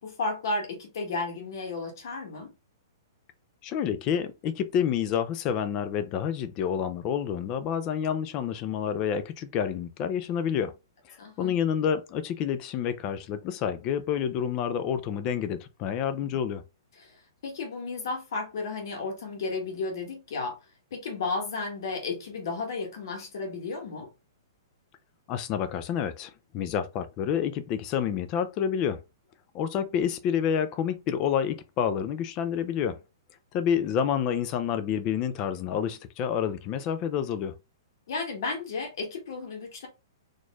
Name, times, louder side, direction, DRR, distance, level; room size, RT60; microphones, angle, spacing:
voice 1, 0.0-2.5 11.2-11.5 16.2-16.4 17.0-17.2 17.4-20.6 20.9-24.1 38.1-39.9, left 3 dB, 60° left, 1.7 m, -33 dB
voice 2, 3.6-10.7 11.1-16.6 25.3-29.0 29.5-33.0 33.5-37.5, left 8 dB, 25° left, 0.4 m, -28 dB
4.3 x 3.0 x 2.4 m
hypercardioid pair, 160°, 2 cm